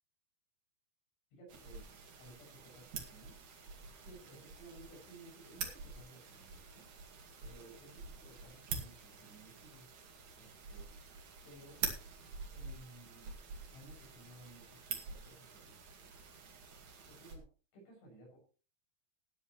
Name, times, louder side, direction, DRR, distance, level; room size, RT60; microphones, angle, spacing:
voice 1, 1.3-3.4 4.0-6.9 7.4-9.9 10.4-10.9 11.5-11.8 12.5-13.4 13.7-16.1 17.1-17.5 17.7-18.4, right 1 dB, 80° left, 0 dB, 9.3 m, -57 dB
sound 1, 1.5-17.4, right 5 dB, 50° right, 3.3 m, -47 dB
18.5 x 11.0 x 3.1 m, 0.37 s
omnidirectional pair, 5.3 m